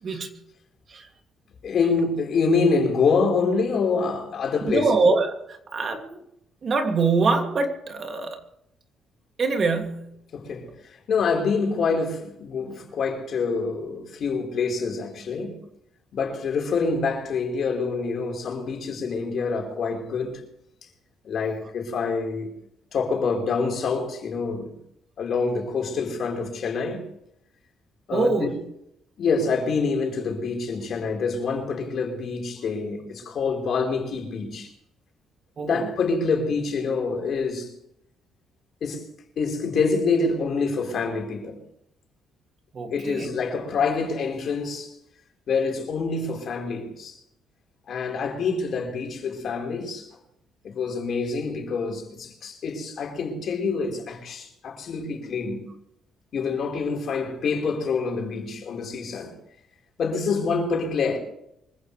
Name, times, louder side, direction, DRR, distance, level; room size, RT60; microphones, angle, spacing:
voice 1, 1.6-4.9 10.3-15.6 16.1-20.4 21.2-22.5 22.9-24.8 25.2-27.0 28.1-28.5 29.2-34.7 35.6-37.7 38.8-39.1 39.4-41.6 42.9-44.9 45.5-47.2 47.9-50.1 50.6-55.7 56.3-59.3 60.0-61.2, left 4 dB, 60° left, 4.6 m, -26 dB
voice 2, 4.6-6.2 6.6-8.4 9.4-10.1 28.1-28.6 35.6-35.9 42.7-43.3, right 3 dB, 50° right, 2.7 m, -24 dB
24.5 x 15.5 x 3.4 m
cardioid pair, 90°, 0 cm